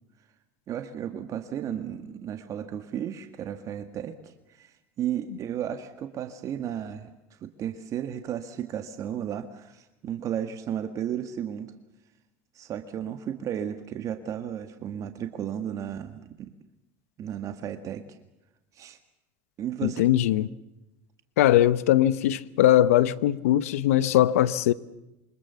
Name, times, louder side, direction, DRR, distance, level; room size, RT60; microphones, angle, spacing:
voice 1, 0.7-7.1 7.4-11.7 12.5-16.5 17.2-18.0 18.7-19.0 19.6-20.0, right 9 dB, 45° right, 1.9 m, -34 dB
voice 2, 19.8-20.5 21.4-24.7, left 13 dB, 90° left, 1.0 m, -21 dB
27.0 x 24.5 x 7.1 m
supercardioid pair, 100°, 8 cm